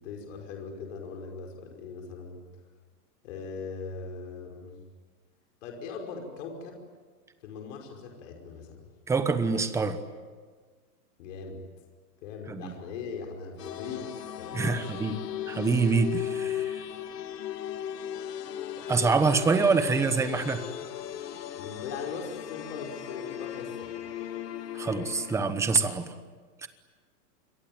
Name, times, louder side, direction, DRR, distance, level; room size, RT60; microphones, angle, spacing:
voice 1, 0.0-2.4 3.2-4.8 5.6-6.8 7.4-8.9 11.2-11.6 12.2-14.1 14.4-15.0 21.6-24.1, left 5 dB, 50° left, 2 dB, 5.6 m, -40 dB
voice 2, 9.1-10.0 12.5-12.7 14.5-15.2 15.5-16.8 18.9-20.6 24.7-26.1 26.6-26.7, right 4 dB, 5° right, 10 dB, 1.0 m, -25 dB
sound 1, 13.6-25.4, left 10 dB, 85° left, 2.4 m, -37 dB
28.5 x 23.0 x 8.9 m, 1.5 s
supercardioid pair, 160°, 47 cm